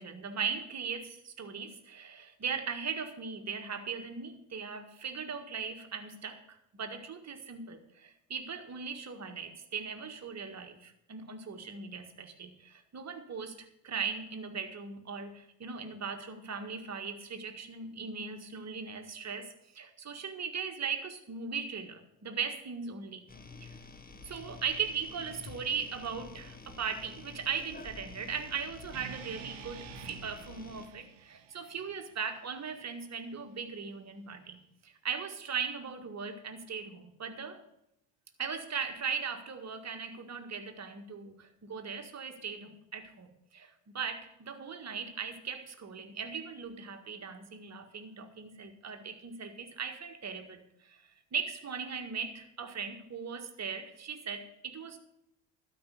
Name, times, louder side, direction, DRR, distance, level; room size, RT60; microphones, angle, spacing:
voice 1, 0.0-13.5 13.8-23.3 23.6-23.8 24.3-37.6 38.4-51.0 51.3-55.0, right 6 dB, 30° right, 6 dB, 1.7 m, -39 dB
sound 1, 23.3-30.9, left 4 dB, 20° left, 1.4 m, -49 dB
sound 2, 28.9-33.1, right 10 dB, 55° right, 1.1 m, -50 dB
12.5 x 5.3 x 8.3 m, 0.80 s
hypercardioid pair, 60°, 49 cm